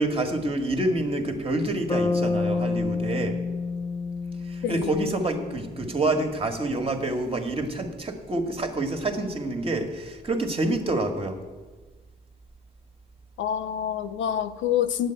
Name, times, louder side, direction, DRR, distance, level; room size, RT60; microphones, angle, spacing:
voice 1, 0.0-3.4 4.4-11.4, right 2 dB, 30° right, 5 dB, 1.6 m, -27 dB
Bass guitar, 1.9-6.0, left 4 dB, 25° left, 0.8 m, -29 dB
voice 2, 4.6-5.2 13.4-15.1, left 9 dB, 70° left, 9 dB, 0.6 m, -27 dB
9.0 x 7.6 x 8.9 m, 1.3 s
cardioid pair, 90°, 20 cm